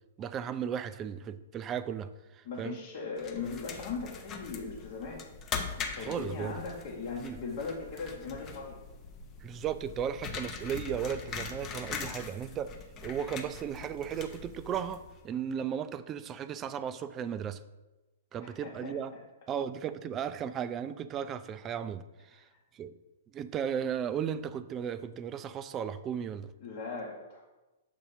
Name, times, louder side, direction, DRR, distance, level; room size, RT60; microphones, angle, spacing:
voice 1, 0.2-2.8 6.0-6.6 7.2-7.4 9.4-12.7 13.0-17.6 18.3-19.1 19.5-22.5 22.7-22.9 23.3-26.5, right 8 dB, 25° right, 13 dB, 0.3 m, -35 dB
voice 2, 2.4-5.2 5.8-8.8 18.4-19.2 22.3-22.5 26.6-27.4, left 4 dB, 50° left, -4 dB, 1.0 m, -39 dB
sound 1, 3.2-15.2, left 6 dB, 30° left, 0.7 m, -42 dB
6.8 x 2.8 x 5.4 m, 1.1 s
figure-of-eight pair, 115°, 0 cm